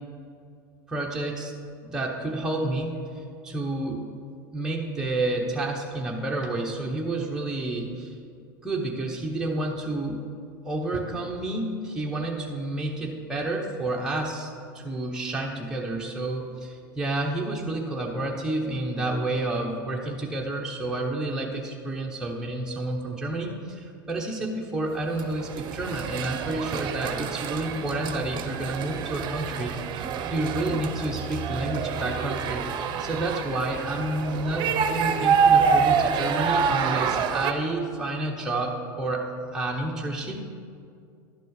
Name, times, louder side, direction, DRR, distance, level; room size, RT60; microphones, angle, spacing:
voice 1, 0.9-1.5 1.8-3.0 3.4-4.1 4.5-8.2 8.6-10.2 10.6-14.5 14.7-32.7 33.0-40.4, right 2 dB, 5° right, -2 dB, 1.0 m, -30 dB
sound 1, 25.2-37.5, right 6 dB, 45° right, 0.7 m, -26 dB
11.5 x 4.1 x 6.5 m, 2.4 s
hypercardioid pair, 95°, 11 cm